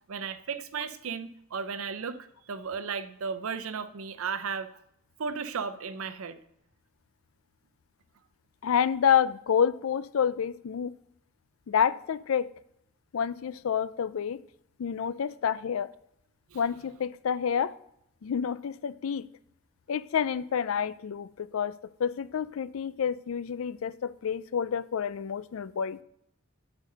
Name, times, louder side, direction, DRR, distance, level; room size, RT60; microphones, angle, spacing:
voice 1, 0.1-2.2 2.5-4.7 5.2-6.4 16.5-16.6, right 5 dB, 90° right, 0.6 m, -34 dB
voice 2, 8.6-10.9 11.7-12.5 13.1-14.4 14.8-15.9 16.5-17.7 18.2-19.3 19.9-21.7 22.0-26.0, left 7 dB, 80° left, 0.4 m, -28 dB
9.2 x 5.3 x 6.6 m
head